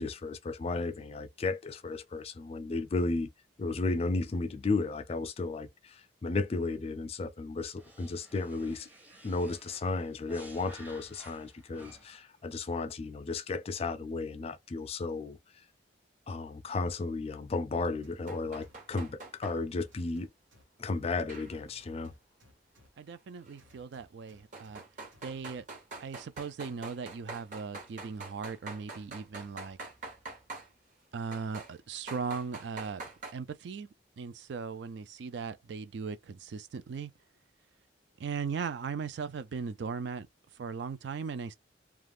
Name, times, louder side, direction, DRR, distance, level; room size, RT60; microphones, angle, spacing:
voice 1, 0.0-3.3 3.6-8.9 9.2-15.4 16.3-20.3 20.8-22.1, left 3 dB, 30° left, 0.3 m, -34 dB
sound 1, 7.8-12.3, equal, 10° right, 0.6 m, -53 dB
sound 2, 18.0-19.1 19.8-21.0 21.3-22.9 23.6-24.8 25.1-25.6, left 1 dB, 85° right, 1.0 m, -61 dB
sound 3, 18.3-19.6 21.3-21.9 23.5-23.6 24.5-30.7 31.3-31.7 32.1-33.3, right 3 dB, 40° right, 0.9 m, -44 dB
voice 2, 23.0-24.8 25.2-25.7 26.0-29.8 31.1-33.0 33.3-33.9 34.2-37.1 38.2-40.3 40.5-41.5, right 5 dB, 60° right, 0.3 m, -38 dB
2.4 x 2.3 x 3.3 m
head